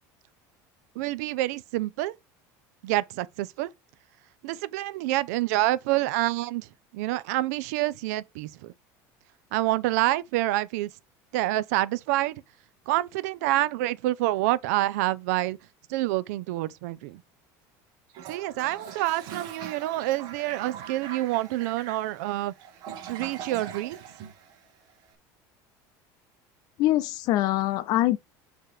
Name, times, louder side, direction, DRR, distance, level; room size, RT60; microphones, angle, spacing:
voice 1, 1.0-2.2 2.8-3.7 4.4-6.7 6.9-8.7 9.5-10.9 11.3-12.4 12.9-15.6 15.9-17.2 18.3-22.5 23.1-24.0, right 16 dB, 90° right, 0.4 m, -27 dB
Toilet flush, 18.1-25.0, right 8 dB, 50° right, 1.1 m, -42 dB
voice 2, 26.8-28.2, left 15 dB, 50° left, 0.5 m, -23 dB
6.7 x 3.0 x 4.8 m
cardioid pair, 155°, 8 cm